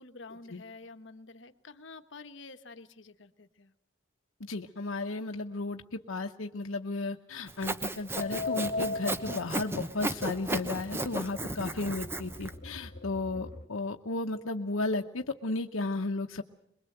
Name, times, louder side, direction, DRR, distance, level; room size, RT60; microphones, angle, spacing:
voice 1, 0.0-3.7, left 3 dB, 65° left, 10 dB, 1.3 m, -49 dB
voice 2, 4.4-16.4, left 2 dB, 85° left, 4 dB, 0.9 m, -34 dB
Sawing, 7.5-12.5, right 1 dB, 10° right, 1.0 m, -35 dB
granular texture, 8.2-13.7, left 3 dB, 45° left, 2.1 m, -39 dB
23.0 x 22.0 x 7.9 m, 0.74 s
head